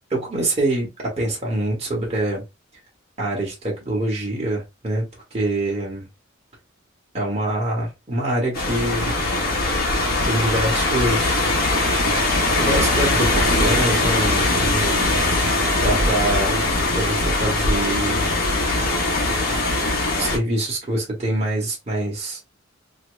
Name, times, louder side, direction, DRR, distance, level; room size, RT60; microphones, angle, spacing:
voice 1, 0.1-2.4 3.2-6.0 7.1-9.1 10.2-11.5 12.6-15.2 15.8-16.6 16.9-18.3 20.2-22.4, right 1 dB, 30° right, 1.4 m, -25 dB
sound 1, 8.5-20.4, left 2 dB, 50° left, 1.1 m, -21 dB
2.9 x 2.8 x 3.1 m
head